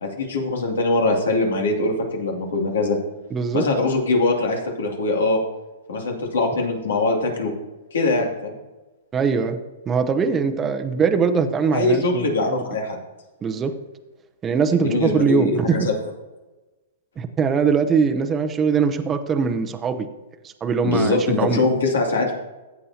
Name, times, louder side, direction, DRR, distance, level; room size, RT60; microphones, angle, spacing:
voice 1, 0.0-3.0 3.5-5.4 5.9-7.5 7.9-8.6 11.7-13.0 14.7-15.9 20.8-22.3, left 2 dB, 85° left, 1 dB, 2.5 m, -22 dB
voice 2, 3.3-3.6 9.1-9.6 9.9-12.6 13.4-13.7 14.4-15.8 17.2-20.1 20.4-21.6, right 5 dB, 20° right, 7 dB, 0.7 m, -21 dB
14.5 x 8.2 x 2.8 m, 1.1 s
hypercardioid pair, 135°, 0 cm